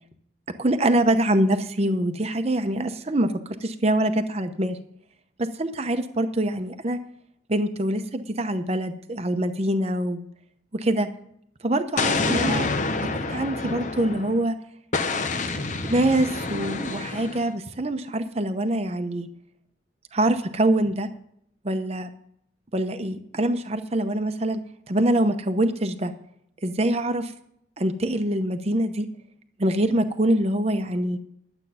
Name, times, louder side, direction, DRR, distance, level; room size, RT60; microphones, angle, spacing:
voice 1, 0.6-4.8 5.4-7.0 7.5-10.3 10.7-11.1 11.6-12.7 13.1-14.5 15.8-19.3 20.1-21.1 21.6-22.1 22.7-24.6 24.9-26.1 26.6-27.3 27.8-29.1 29.6-31.2, right 1 dB, 35° right, 7 dB, 0.8 m, -24 dB
Explosion, 12.0-14.4 14.9-17.5, left 3 dB, 40° left, 0.8 m, -27 dB
11.5 x 8.0 x 5.7 m, 0.71 s
head